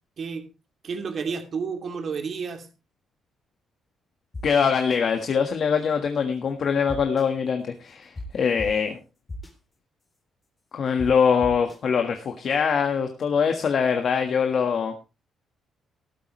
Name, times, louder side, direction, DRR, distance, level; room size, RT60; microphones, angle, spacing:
voice 1, 0.2-0.5 0.8-2.7, right 5 dB, 55° right, 6 dB, 2.7 m, -31 dB
sound 1, 4.3-4.4 4.9-5.0 6.9-7.2 8.2-8.3 8.6-8.7 9.3-9.5 11.0-11.1 11.4-11.8, left 2 dB, 25° left, 3.4 m, -35 dB
voice 2, 4.4-9.0 10.7-14.9, left 6 dB, 55° left, 5 dB, 1.5 m, -23 dB
14.0 x 12.5 x 3.2 m, 0.29 s
cardioid pair, 90°, 0 cm